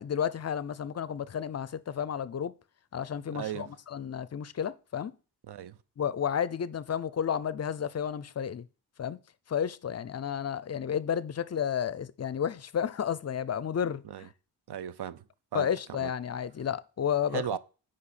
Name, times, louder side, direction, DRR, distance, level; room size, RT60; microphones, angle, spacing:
voice 1, 0.0-2.5 2.9-5.1 6.0-8.7 9.0-9.2 9.5-14.3 15.5-17.4, left 8 dB, 40° left, 0.5 m, -32 dB
voice 2, 3.3-3.7 5.5-5.8 14.0-14.3 14.7-15.2 15.5-15.7 16.0-16.1 17.3-17.6, right 10 dB, 70° right, 0.6 m, -36 dB
8.4 x 5.3 x 4.2 m
wide cardioid pair, 105°, 42 cm